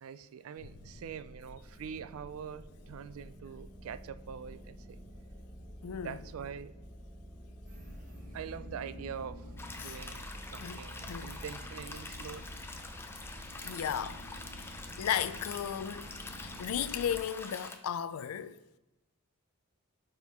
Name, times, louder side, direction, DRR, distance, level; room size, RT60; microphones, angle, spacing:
voice 1, 0.0-5.0 6.0-6.7 8.3-9.5 9.8-12.5, right 7 dB, 70° right, 0.3 m, -44 dB
sound 1, 0.6-17.2, equal, 15° right, 1.1 m, -49 dB
voice 2, 5.8-6.2 9.8-10.0 10.6-10.8 11.1-11.3 13.6-14.2 14.6-16.1 16.4-18.8, left 9 dB, 85° left, 0.4 m, -35 dB
sound 2, 7.7-17.2, equal, 40° right, 1.3 m, -52 dB
sound 3, 9.6-17.8, left 3 dB, 10° left, 0.5 m, -45 dB
11.5 x 4.4 x 3.5 m
head